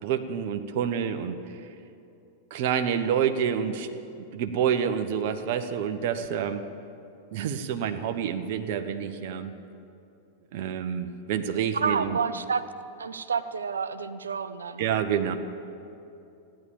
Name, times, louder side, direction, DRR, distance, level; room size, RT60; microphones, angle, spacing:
voice 1, 0.0-1.4 2.5-3.9 4.3-6.6 7.3-9.5 10.5-12.2 14.8-15.4, right 8 dB, 55° right, 8 dB, 1.0 m, -28 dB
voice 2, 11.7-12.6 13.0-14.8, right 5 dB, 85° right, 12 dB, 0.7 m, -29 dB
15.5 x 10.5 x 8.6 m, 2.7 s
hypercardioid pair, 95°, 0 cm